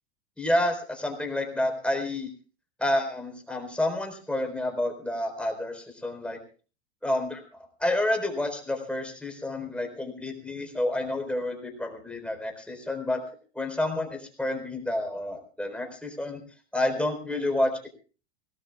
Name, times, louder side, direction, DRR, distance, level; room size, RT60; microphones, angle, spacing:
voice 1, 0.4-2.3 2.8-6.4 7.0-7.4 7.8-13.2 13.5-16.4 16.7-17.9, left 1 dB, 5° left, 3 dB, 4.3 m, -29 dB
24.0 x 18.5 x 2.4 m, 0.38 s
supercardioid pair, 120°, 33 cm